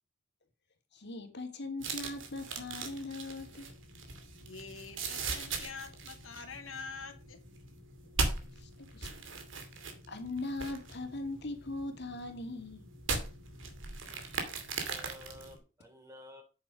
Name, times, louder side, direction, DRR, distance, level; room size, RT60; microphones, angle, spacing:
voice 1, 0.9-3.7 8.5-9.1 10.1-12.9, left 2 dB, 60° left, 2.5 m, -40 dB
sound 1, 1.8-15.6, right 4 dB, 65° right, 2.5 m, -40 dB
voice 2, 4.4-7.4, left 4 dB, 85° left, 2.3 m, -45 dB
voice 3, 14.7-16.4, left 1 dB, 15° right, 3.1 m, -52 dB
9.2 x 7.7 x 5.2 m
head